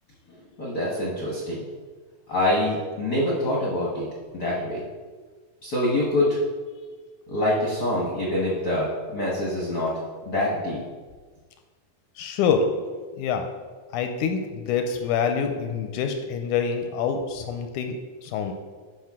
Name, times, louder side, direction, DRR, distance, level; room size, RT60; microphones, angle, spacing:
voice 1, 0.6-1.6 2.3-4.0 4.3-4.8 5.6-6.4 7.3-10.0 10.2-10.8, left 1 dB, 60° left, -5 dB, 1.0 m, -25 dB
voice 2, 12.2-12.7 13.2-13.5 13.9-18.5, left 6 dB, 80° left, 6 dB, 1.8 m, -26 dB
12.0 x 5.0 x 3.6 m, 1.4 s
omnidirectional pair, 4.0 m